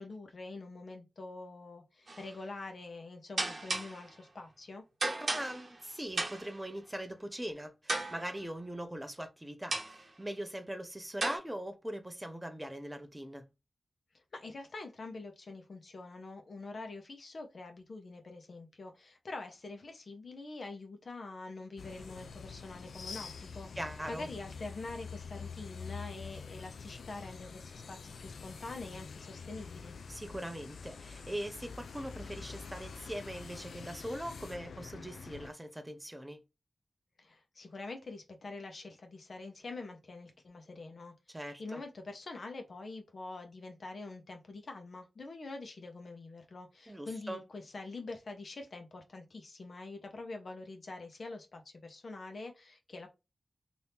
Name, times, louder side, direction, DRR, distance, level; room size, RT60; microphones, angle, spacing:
voice 1, 0.0-4.8 14.3-23.7 24.1-29.9 37.2-53.1, left 3 dB, 65° left, 0.9 m, -45 dB
sound 1, 2.1-2.3 3.4-4.1 5.0-5.8 6.2-6.6 7.9-8.4 9.7-10.1 11.2-11.4, right 2 dB, 60° right, 1.0 m, -35 dB
voice 2, 5.2-13.4 23.8-24.3 30.1-36.4 41.3-41.8 46.9-47.4, right 1 dB, 15° right, 0.6 m, -41 dB
sound 2, 21.8-35.5, left 5 dB, 90° left, 0.3 m, -46 dB
2.8 x 2.7 x 3.4 m
cardioid pair, 55°, 0 cm